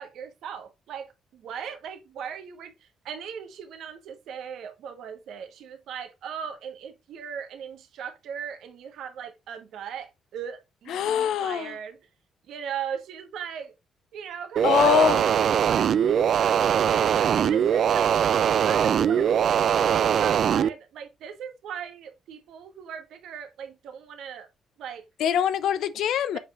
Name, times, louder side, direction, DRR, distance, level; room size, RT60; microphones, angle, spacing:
voice 1, 0.0-2.7 3.0-12.0 12.5-13.7 14.1-18.2 18.6-24.5 24.8-25.1 26.3-26.4, right 7 dB, 80° right, 1.2 m, -38 dB
voice 2, 10.9-11.7 14.6-15.3 25.2-26.4, left 9 dB, 80° left, 0.6 m, -23 dB
sound 1, 14.6-20.7, right 8 dB, 60° right, 0.3 m, -22 dB
7.3 x 5.3 x 2.5 m
cardioid pair, 90°, 0 cm